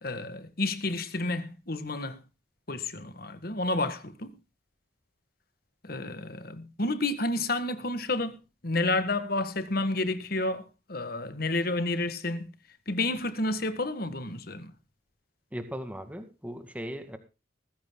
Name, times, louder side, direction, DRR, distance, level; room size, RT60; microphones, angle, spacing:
voice 1, 0.0-2.2 2.7-4.4 5.8-12.5 12.9-14.7, left 2 dB, 50° left, 1.7 m, -30 dB
voice 2, 15.5-17.2, equal, 5° right, 2.1 m, -38 dB
20.0 x 15.0 x 2.3 m
head